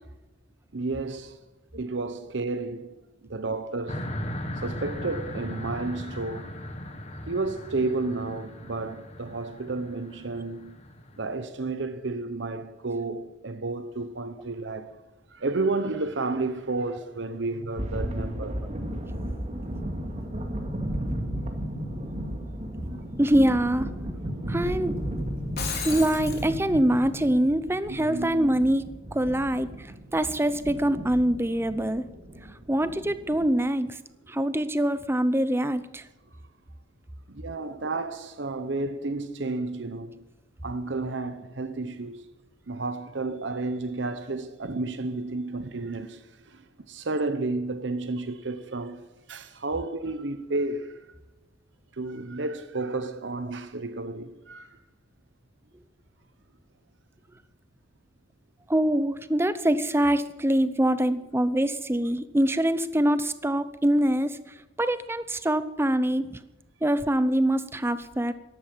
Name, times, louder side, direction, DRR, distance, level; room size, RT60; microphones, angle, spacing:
voice 1, 0.7-1.4 1.7-2.9 3.2-4.1 4.6-6.5 7.3-10.8 11.2-14.9 15.3-18.6 27.9-28.4 37.3-40.2 40.6-42.2 42.7-49.0 49.3-51.0 51.9-54.8, right 3 dB, 70° right, 0.9 m, -31 dB
sound 1, 3.9-11.4, left 1 dB, 35° left, 1.7 m, -38 dB
sound 2, 17.8-33.5, equal, 40° right, 2.2 m, -34 dB
voice 2, 23.2-23.9 24.5-24.9 25.8-32.1 32.7-34.0 34.3-36.0 58.7-64.4 64.8-66.4 66.8-68.3, right 1 dB, 15° right, 0.7 m, -24 dB
Shatter, 25.4-26.5, left 6 dB, 55° left, 3.4 m, -34 dB
13.5 x 12.0 x 7.4 m
head